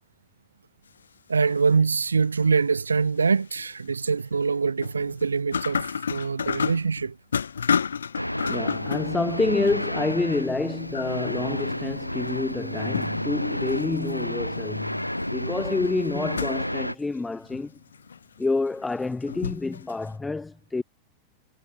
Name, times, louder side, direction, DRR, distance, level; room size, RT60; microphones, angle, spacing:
sound 1, 1.3-1.9 2.4-2.5 3.2-3.7 4.3-10.4 10.7-11.9 12.2-13.3 13.7-20.1, left 6 dB, 70° left, 2.5 m, -32 dB
voice 1, 1.3-7.2, right 5 dB, 75° right, 0.9 m, -24 dB
sound 2, 8.1-16.9, left 1 dB, 90° left, 0.4 m, -30 dB
voice 2, 8.5-15.0 15.3-17.7 18.4-20.8, left 3 dB, 10° left, 0.5 m, -28 dB
figure-of-eight pair, 90°, 0 cm